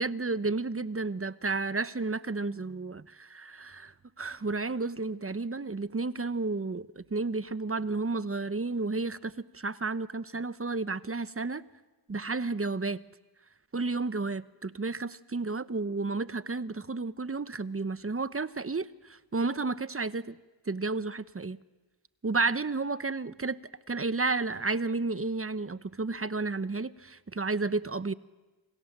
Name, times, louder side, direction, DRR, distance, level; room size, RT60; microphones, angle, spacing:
voice 1, 0.0-11.6 12.1-13.0 13.7-20.3 20.7-21.6 22.2-23.6 23.9-28.1, right 3 dB, 30° right, 15 dB, 1.0 m, -32 dB
28.5 x 27.0 x 7.5 m, 1.2 s
cardioid pair, 50°, 45 cm